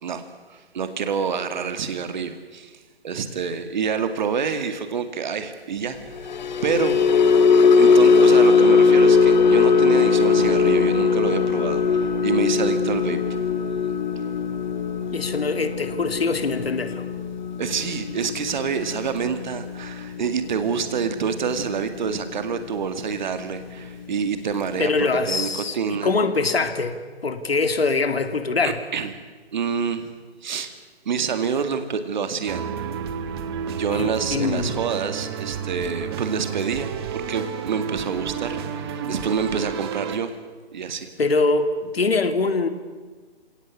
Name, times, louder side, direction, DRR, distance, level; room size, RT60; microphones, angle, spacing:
voice 1, 0.0-2.8 3.0-6.3 6.6-7.0 7.8-13.2 17.6-26.1 28.6-29.1 29.5-30.1 30.4-30.7 31.1-32.7 33.7-40.4 40.7-41.1, right 6 dB, 45° right, 9 dB, 2.2 m, -27 dB
sound 1, 6.1-22.5 22.9-23.2 23.5-23.7, left 5 dB, 45° left, 1.2 m, -20 dB
voice 2, 15.1-17.0 24.8-27.0 27.2-28.8 33.9-34.8 41.2-42.7, left 3 dB, 65° left, 9 dB, 2.7 m, -23 dB
sound 2, 32.5-40.2, right 7 dB, 25° right, 1.4 m, -31 dB
28.5 x 18.0 x 8.4 m, 1.4 s
figure-of-eight pair, 145°, 32 cm